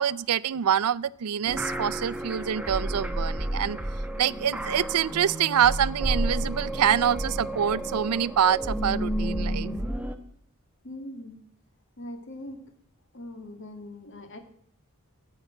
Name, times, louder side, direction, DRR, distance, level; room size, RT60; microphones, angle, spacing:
voice 1, 0.0-3.8 4.2-9.7, right 9 dB, 85° right, 18 dB, 0.5 m, -25 dB
sound 1, 1.5-10.2, right 1 dB, 5° right, 0.9 m, -31 dB
voice 2, 10.8-11.4 12.0-12.6 13.1-14.4, left 1 dB, 55° left, 5 dB, 2.1 m, -41 dB
15.5 x 5.6 x 8.9 m, 0.65 s
head